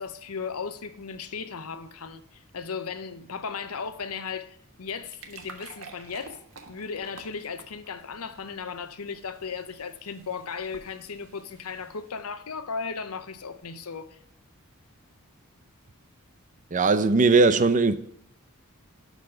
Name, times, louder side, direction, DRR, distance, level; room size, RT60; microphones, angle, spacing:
voice 1, 0.0-6.4 6.7-14.2, left 5 dB, 85° left, 0.8 m, -36 dB
sound 1, 5.0-12.3, right 4 dB, 70° right, 1.4 m, -50 dB
voice 2, 16.7-18.0, right 3 dB, 35° right, 0.5 m, -19 dB
12.0 x 4.2 x 5.5 m
head